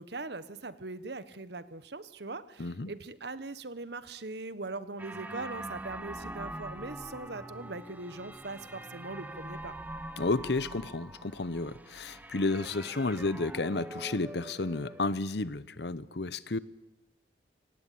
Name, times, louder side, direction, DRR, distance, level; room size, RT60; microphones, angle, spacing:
voice 1, 0.0-9.7, right 3 dB, 65° right, 14 dB, 1.3 m, -41 dB
voice 2, 2.6-2.9 10.2-16.6, left 3 dB, 65° left, 18 dB, 0.9 m, -32 dB
sound 1, 5.0-15.1, right 1 dB, 10° right, 1.0 m, -44 dB
25.5 x 18.5 x 8.6 m, 0.92 s
head